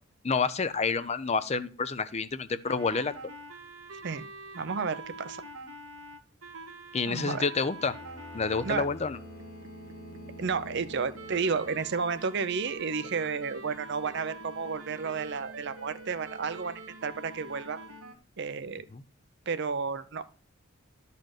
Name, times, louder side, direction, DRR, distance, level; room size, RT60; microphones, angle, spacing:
voice 1, 0.2-3.1 6.9-7.9 8.3-9.2 18.9-19.0, left 4 dB, 30° left, 13 dB, 0.5 m, -29 dB
sound 1, 2.6-8.7 9.1-18.1, right 2 dB, 90° right, 1.2 m, -45 dB
voice 2, 4.5-5.4 7.1-7.4 8.6-8.9 10.4-17.8 18.4-18.9 19.5-20.4, right 5 dB, 55° right, 13 dB, 0.6 m, -32 dB
Bowed string instrument, 7.8-12.2, right 1 dB, 45° left, 1.7 m, -48 dB
12.0 x 4.2 x 6.5 m, 0.41 s
head